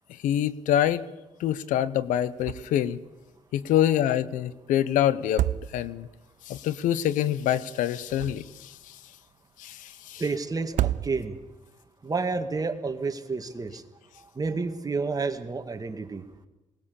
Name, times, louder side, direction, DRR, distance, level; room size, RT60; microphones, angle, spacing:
voice 1, 0.1-1.0 1.4-3.0 3.5-5.4 5.7-6.1 6.5-9.0 9.6-10.2, left 11 dB, 85° left, 16 dB, 0.8 m, -26 dB
sound 1, 2.4-2.9 3.2-3.3 5.1-6.2 7.9-8.8 10.6-11.6, right 13 dB, 75° right, 0.6 m, -30 dB
voice 2, 10.2-11.4 12.0-13.8 14.2-16.3, right 4 dB, 30° right, 7 dB, 2.1 m, -30 dB
20.0 x 19.0 x 7.1 m, 1.1 s
cardioid pair, 75°, 13 cm